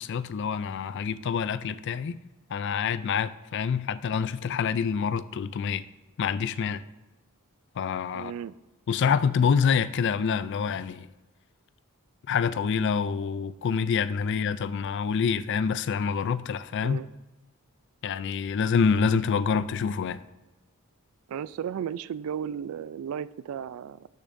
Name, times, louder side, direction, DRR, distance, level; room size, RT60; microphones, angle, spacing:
voice 1, 0.0-2.2 2.5-5.8 6.2-6.8 7.8-8.3 8.9-11.1 12.3-17.0 18.0-20.2, left 6 dB, 55° left, 0.3 m, -26 dB
voice 2, 8.1-8.5 16.8-17.1 21.3-24.1, right 8 dB, 70° right, 0.3 m, -34 dB
12.0 x 6.6 x 2.6 m
head